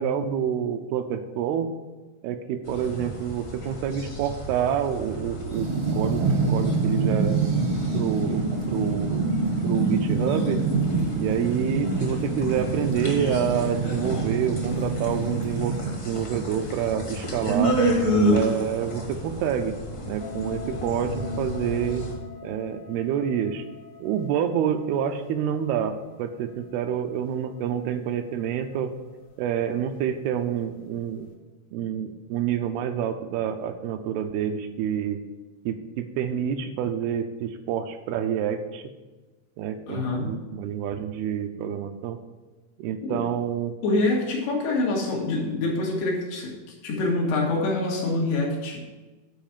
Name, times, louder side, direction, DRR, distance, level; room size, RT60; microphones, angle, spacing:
voice 1, 0.0-1.7 2.2-7.4 7.9-9.3 9.6-10.6 11.2-17.8 18.3-19.8 20.1-22.1 22.4-23.6 24.0-29.0 29.4-31.3 31.7-35.2 35.7-38.8 39.6-42.2 42.8-43.7, right 9 dB, 80° right, 7 dB, 2.7 m, -28 dB
sound 1, 2.6-22.1, right 1 dB, 40° left, 1.1 m, -31 dB
sound 2, 5.5-15.9, right 3 dB, 60° right, 1.6 m, -26 dB
sound 3, 20.2-29.5, left 5 dB, 65° left, 1.7 m, -43 dB
voice 2, 39.9-40.3 43.0-43.2 43.8-46.5 46.8-48.8, left 2 dB, 85° left, -2 dB, 4.1 m, -25 dB
10.5 x 4.7 x 7.3 m, 1.2 s
omnidirectional pair, 4.5 m